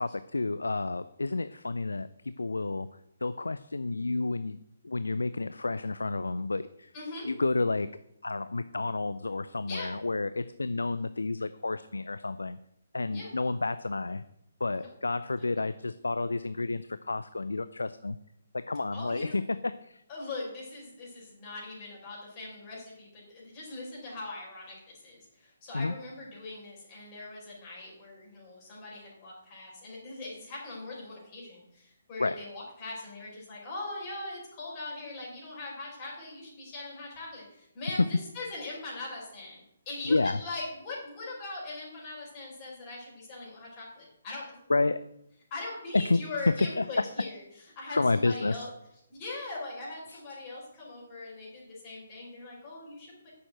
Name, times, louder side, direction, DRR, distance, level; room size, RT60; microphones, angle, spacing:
voice 1, 0.0-2.9 3.2-4.6 4.8-6.9 7.2-7.9 8.2-12.6 12.9-14.2 14.6-18.2 18.5-20.0 25.7-25.9 32.2-32.4 37.9-38.0 40.1-40.4 44.7-45.0 45.9-47.0 47.9-48.6 50.1-50.4, left 3 dB, 70° left, 13 dB, 0.5 m, -30 dB
voice 2, 6.9-7.3 9.6-9.9 13.1-13.3 14.8-14.9 15.4-15.5 18.9-19.4 20.1-44.6 45.5-47.4 47.8-48.7 49.1-53.3, left 2 dB, 30° left, -5 dB, 5.2 m, -41 dB
10.0 x 7.0 x 7.8 m, 0.79 s
figure-of-eight pair, 135°, 0 cm